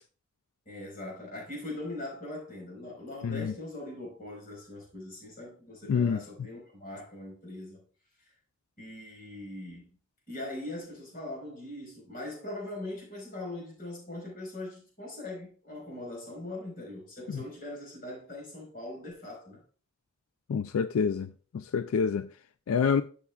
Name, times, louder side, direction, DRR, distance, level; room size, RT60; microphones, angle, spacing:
voice 1, 0.6-7.8 8.8-9.9 10.3-19.6, left 1 dB, 45° left, 4.5 m, -41 dB
voice 2, 3.2-3.5 5.9-6.2 17.3-17.4 20.5-22.3 22.7-23.0, left 6 dB, 85° left, 0.4 m, -27 dB
11.5 x 7.0 x 2.3 m
head